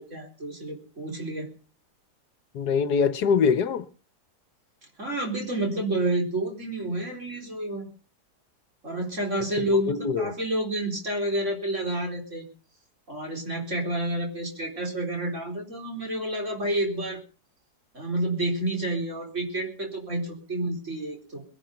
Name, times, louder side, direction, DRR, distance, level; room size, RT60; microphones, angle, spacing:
voice 1, 0.0-1.5 5.0-7.9 8.8-12.5 13.1-17.2 17.9-21.4, right 1 dB, 45° right, 4.6 m, -29 dB
voice 2, 2.5-3.8 9.6-10.3, left 6 dB, 75° left, 1.5 m, -24 dB
21.5 x 10.5 x 5.2 m
omnidirectional pair, 1.7 m